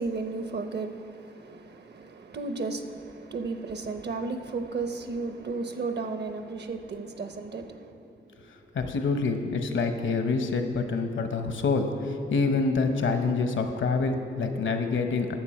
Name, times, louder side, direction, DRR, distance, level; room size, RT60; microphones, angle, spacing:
voice 1, 0.0-8.1, right 3 dB, 55° right, 0.8 m, -34 dB
voice 2, 8.7-15.4, left 4 dB, 70° left, 0.9 m, -26 dB
12.0 x 7.2 x 4.3 m
cardioid pair, 55°, 21 cm